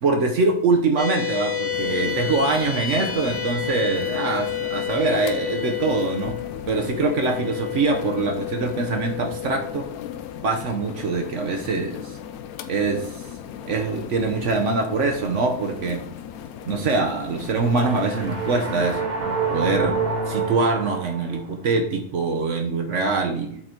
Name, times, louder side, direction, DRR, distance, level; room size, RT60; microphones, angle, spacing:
voice 1, 0.0-6.4 6.7-9.9 10.4-12.2 12.7-13.2 13.7-16.1 16.7-20.0 20.3-23.6, right 3 dB, 60° right, 3 dB, 1.1 m, -24 dB
sound 1, 1.0-13.6, left 9 dB, 20° left, 0.3 m, -31 dB
sound 2, 1.7-19.0, left 9 dB, 85° left, 1.1 m, -38 dB
sound 3, 17.3-21.6, right 4 dB, 45° right, 1.8 m, -28 dB
7.8 x 3.9 x 4.4 m, 0.65 s
omnidirectional pair, 1.5 m